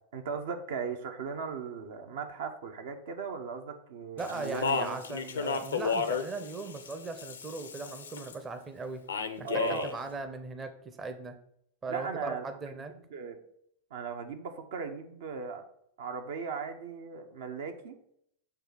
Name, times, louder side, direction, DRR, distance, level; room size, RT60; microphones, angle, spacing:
voice 1, 0.1-5.0 9.4-9.9 11.9-13.4 13.9-15.6 16.0-18.0, right 5 dB, 55° right, 6 dB, 0.7 m, -38 dB
Speech, 4.2-8.3 9.1-9.9, left 5 dB, 70° left, 0.6 m, -33 dB
voice 2, 4.2-9.0 9.4-11.4 11.8-12.9, right 3 dB, 20° right, 8 dB, 0.7 m, -38 dB
6.8 x 2.8 x 5.6 m, 0.71 s
figure-of-eight pair, 90°, 0 cm